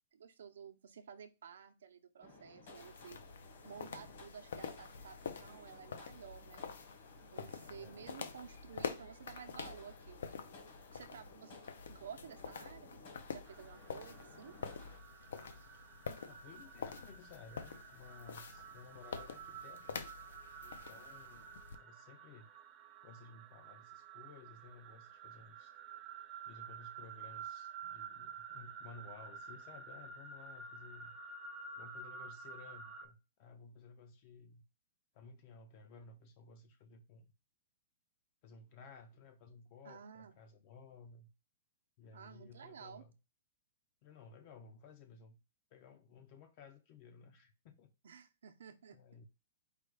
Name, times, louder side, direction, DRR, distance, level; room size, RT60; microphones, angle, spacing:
voice 1, 0.1-3.2 3.6-6.6 7.2-10.4 10.9-11.6 11.9-13.0 13.3-14.6 15.6-15.7 39.8-40.3 42.1-43.0 48.0-49.0, right 7 dB, 85° right, 0.7 m, -53 dB
sound 1, 2.2-15.0, left 3 dB, 50° left, 1.5 m, -58 dB
sound 2, 2.7-21.8, left 6 dB, 80° left, 0.6 m, -47 dB
sound 3, 13.5-33.0, right 6 dB, 20° right, 0.5 m, -51 dB
voice 2, 16.1-20.0 20.6-21.5 21.8-22.5 23.0-25.7 26.4-31.2 31.8-34.6 35.1-37.3 38.4-41.3 42.0-43.1 44.0-45.4 45.7-47.9 48.9-49.3, left 4 dB, 35° left, 0.5 m, -56 dB
4.8 x 2.3 x 4.8 m
hypercardioid pair, 170°, 0 cm